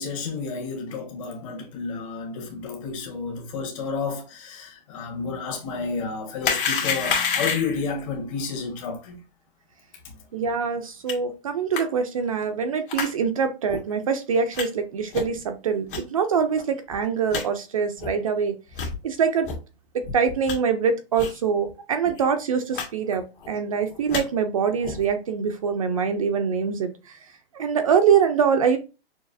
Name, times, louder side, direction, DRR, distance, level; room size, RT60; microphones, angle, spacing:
voice 1, 0.0-9.2 10.0-10.2, left 4 dB, 35° left, 1.4 m, -31 dB
sound 1, 6.4-7.9 11.1-11.2 11.7-11.8 12.9-13.1 13.7-13.8 14.5-14.6 15.1-15.4 15.9-16.0 16.6-16.7 16.9-17.0 17.3-17.4 18.0-18.1 18.7-18.9 19.4-19.6 20.0-20.5 21.2-21.4 21.7-21.8 22.0-22.2 22.7-22.9 23.1-23.5 23.9-24.2 24.8-25.1, left 6 dB, 60° left, 1.9 m, -28 dB
voice 2, 10.3-18.6 19.0-19.5 19.9-27.2 27.5-28.8, right 6 dB, 35° right, 0.4 m, -24 dB
6.2 x 2.8 x 2.6 m
hypercardioid pair, 170°, 30 cm